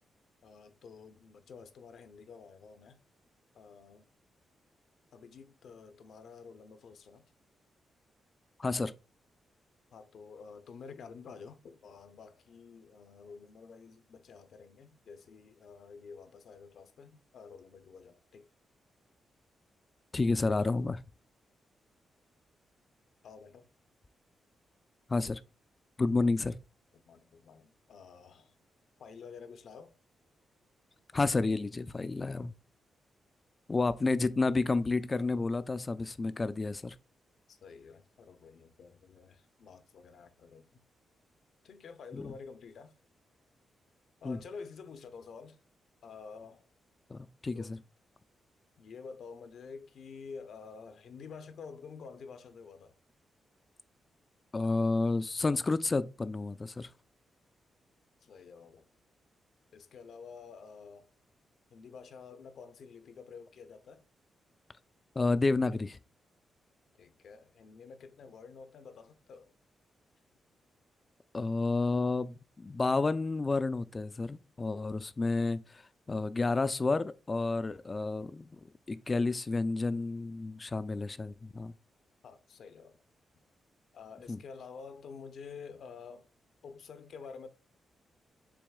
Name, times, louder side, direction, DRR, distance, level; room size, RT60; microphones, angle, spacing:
voice 1, 0.4-3.0 3.5-4.1 5.1-7.3 9.9-18.5 20.8-20.9 23.2-23.7 26.9-28.5 29.0-29.9 37.5-40.8 41.6-42.9 44.2-45.6 46.0-46.7 47.5-47.7 48.8-52.9 58.2-58.9 59.7-61.1 61.7-64.0 67.0-69.5 82.2-83.0 83.9-86.3 86.6-87.5, left 5 dB, 70° left, 0.6 m, -49 dB
voice 2, 8.6-8.9 20.1-21.0 25.1-25.4 26.0-26.6 31.1-32.5 33.7-37.0 42.1-42.3 44.2-44.4 47.1-47.8 54.5-56.9 65.2-66.0 71.3-75.8 76.1-78.6 78.9-81.7 84.3-84.4, left 3 dB, 30° left, 0.3 m, -30 dB
6.0 x 3.5 x 2.2 m
cardioid pair, 70°, 0 cm